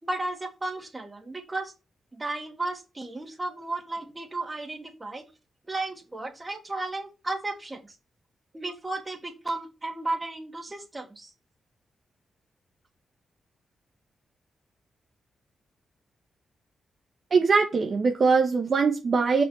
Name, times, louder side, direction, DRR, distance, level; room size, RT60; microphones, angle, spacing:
voice 1, 0.0-1.7 2.1-5.3 5.7-8.0 8.5-11.3, right 2 dB, 25° right, 3.1 m, -34 dB
voice 2, 17.3-19.4, right 4 dB, 55° right, 1.5 m, -22 dB
6.2 x 5.5 x 4.5 m
supercardioid pair, 50°, 0 cm